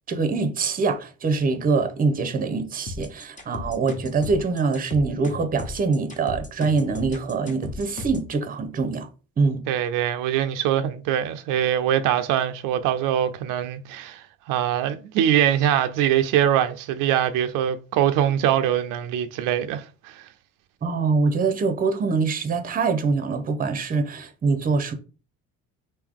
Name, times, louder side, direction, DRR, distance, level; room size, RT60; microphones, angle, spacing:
voice 1, 0.1-9.1 9.4-9.7 20.8-24.9, right 4 dB, 30° right, 0.7 m, -24 dB
sound 1, 2.9-8.3, left 3 dB, 25° left, 1.0 m, -35 dB
voice 2, 9.7-20.2, right 10 dB, 85° right, 0.5 m, -23 dB
3.6 x 2.7 x 3.5 m
cardioid pair, 110°, 31 cm